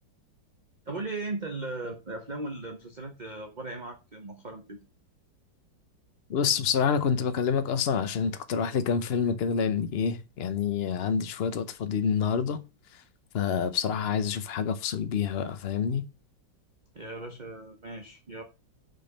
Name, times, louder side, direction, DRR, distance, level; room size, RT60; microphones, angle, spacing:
voice 1, 0.9-4.8 16.9-18.4, right 2 dB, 30° right, 0.8 m, -37 dB
voice 2, 6.3-12.6 13.3-16.0, left 6 dB, 85° left, 0.5 m, -27 dB
6.0 x 5.1 x 6.6 m
omnidirectional pair, 2.1 m